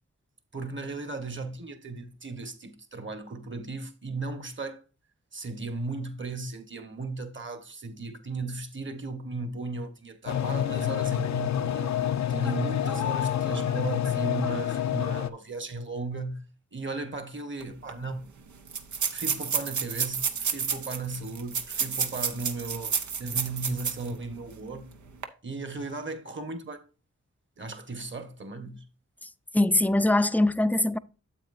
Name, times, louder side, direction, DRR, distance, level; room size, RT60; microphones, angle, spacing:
voice 1, 0.5-4.8 5.3-16.4 16.7-18.3 19.1-24.9 25.4-26.8 27.6-28.8, right 3 dB, 40° right, 1.4 m, -36 dB
sound 1, 10.3-15.3, left 10 dB, 70° left, 0.6 m, -28 dB
sound 2, 17.6-17.7 17.9-18.0 18.7-24.1 24.5-24.6 25.1-25.2, right 6 dB, 85° right, 0.8 m, -30 dB
voice 2, 29.5-31.0, left 1 dB, 5° left, 0.5 m, -22 dB
9.0 x 7.5 x 2.6 m
cardioid pair, 50°, 29 cm